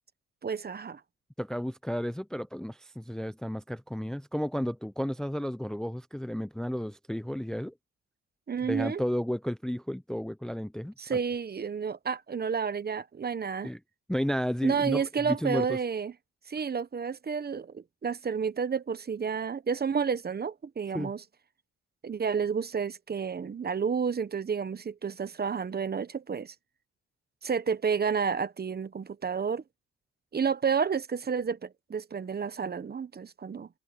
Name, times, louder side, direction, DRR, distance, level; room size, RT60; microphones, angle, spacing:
voice 1, 0.4-1.0 8.5-9.0 11.0-13.7 14.6-16.1 16.5-21.2 22.0-26.5 27.4-29.6 30.3-33.7, right 6 dB, 30° right, 1.0 m, -30 dB
voice 2, 1.4-7.8 8.6-11.2 13.6-13.8 14.1-15.8 20.9-21.1, equal, ahead, 0.6 m, -32 dB
cardioid pair, 90°, 30 cm